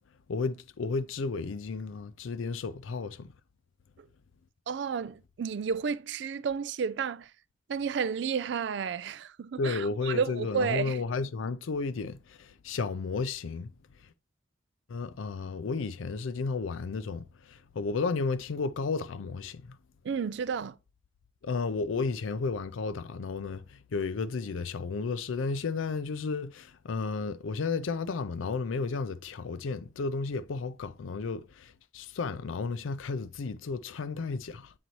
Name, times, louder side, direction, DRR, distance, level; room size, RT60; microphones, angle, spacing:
voice 1, 0.3-3.3 9.6-13.7 14.9-19.8 21.4-34.7, left 4 dB, 85° left, 0.4 m, -33 dB
voice 2, 4.7-7.3 7.7-11.0 20.0-20.8, right 6 dB, 60° right, 0.3 m, -31 dB
7.8 x 4.0 x 3.0 m
head